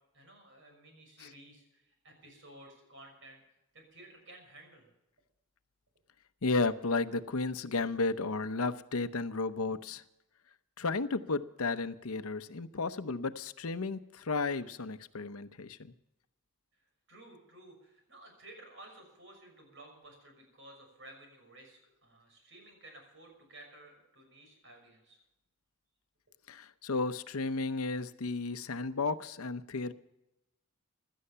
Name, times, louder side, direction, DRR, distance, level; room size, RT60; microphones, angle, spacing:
voice 1, 0.1-3.4 3.7-4.9 17.1-25.2, right 1 dB, 60° right, 3 dB, 6.1 m, -54 dB
voice 2, 6.4-10.0 10.8-15.9 26.5-29.9, left 3 dB, 85° left, 12 dB, 0.8 m, -33 dB
16.5 x 12.5 x 5.7 m, 0.90 s
head